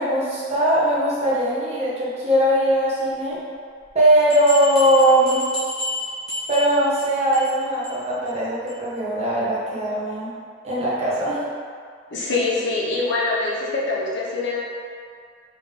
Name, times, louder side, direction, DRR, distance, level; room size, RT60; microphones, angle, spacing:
voice 1, 0.0-3.4 3.9-5.4 6.5-10.3 10.6-11.4, right 1 dB, 30° right, -8 dB, 0.8 m, -20 dB
sound 1, 3.9-4.0 4.3-7.0 7.3-7.6 7.8-7.9 8.3-8.4 8.7-8.8, left 1 dB, ahead, 1.2 m, -30 dB
voice 2, 12.1-14.6, left 3 dB, 60° left, -5 dB, 0.7 m, -24 dB
3.6 x 2.9 x 3.6 m, 2.1 s
head